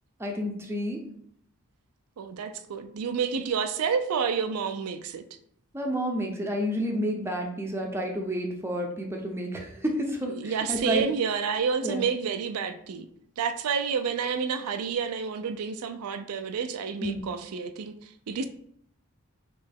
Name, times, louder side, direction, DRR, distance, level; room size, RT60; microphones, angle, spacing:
voice 1, 0.2-1.0 5.7-11.0 11.8-12.1 17.0-17.2, equal, 10° right, 1 dB, 0.6 m, -30 dB
voice 2, 2.2-5.2 10.3-13.1 13.4-18.5, right 6 dB, 85° right, 9 dB, 0.4 m, -29 dB
4.1 x 3.1 x 3.5 m, 0.67 s
head